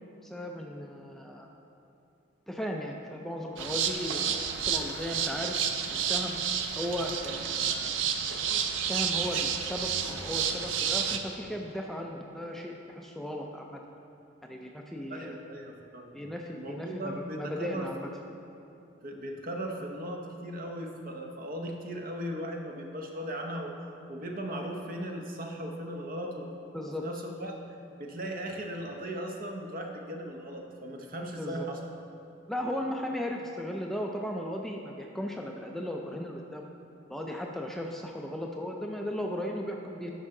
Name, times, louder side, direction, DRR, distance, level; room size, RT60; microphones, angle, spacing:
voice 1, 0.2-1.5 2.5-5.6 5.9-6.4 6.8-8.0 8.9-13.8 14.4-15.4 16.1-18.1 26.7-27.1 31.4-31.7 32.5-36.7 37.1-40.1, equal, ahead, 1 dB, 0.4 m, -36 dB
sound 1, 3.6-11.2, right 7 dB, 80° right, 0.5 m, -30 dB
voice 2, 15.1-16.2 16.5-18.1 19.0-23.7 24.1-27.5 28.0-31.9, right 1 dB, 45° right, 2 dB, 0.8 m, -37 dB
11.0 x 5.4 x 3.7 m, 2.8 s
head